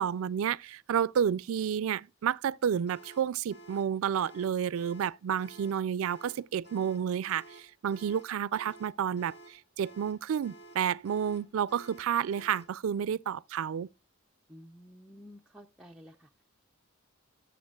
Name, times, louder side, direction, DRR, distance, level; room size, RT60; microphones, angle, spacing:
voice 1, 0.0-13.9, right 8 dB, 75° right, 0.3 m, -30 dB
sound 1, 2.9-12.8, right 2 dB, 50° left, 1.0 m, -53 dB
voice 2, 14.5-16.3, equal, 5° right, 0.4 m, -52 dB
12.5 x 6.9 x 2.3 m
head